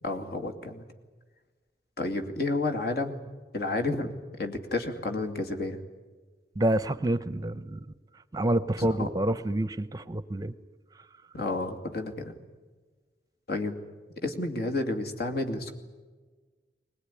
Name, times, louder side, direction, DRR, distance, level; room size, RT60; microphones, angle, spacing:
voice 1, 0.0-0.9 2.0-3.2 3.5-5.8 8.8-9.1 11.3-12.3 13.5-13.8 14.2-15.7, left 2 dB, 60° left, 5 dB, 2.6 m, -31 dB
voice 2, 6.6-7.9 8.3-10.5, right 1 dB, 20° right, 13 dB, 0.7 m, -28 dB
22.0 x 20.0 x 10.0 m, 1.4 s
head